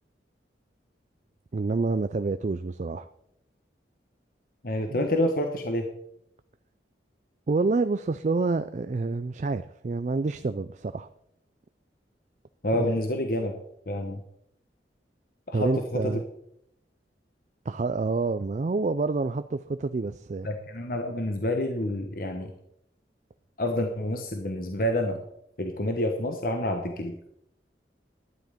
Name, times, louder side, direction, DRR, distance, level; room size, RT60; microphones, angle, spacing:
voice 1, 1.5-3.1 4.9-5.0 7.5-11.1 12.8-12.9 15.5-16.2 17.7-20.5, right 3 dB, 40° right, 12 dB, 0.4 m, -28 dB
voice 2, 4.6-5.9 12.6-13.5 13.9-14.2 15.5-16.0 20.4-22.5 23.6-25.2 25.6-27.1, left 1 dB, 50° left, 4 dB, 1.2 m, -28 dB
12.0 x 9.7 x 5.1 m, 0.76 s
head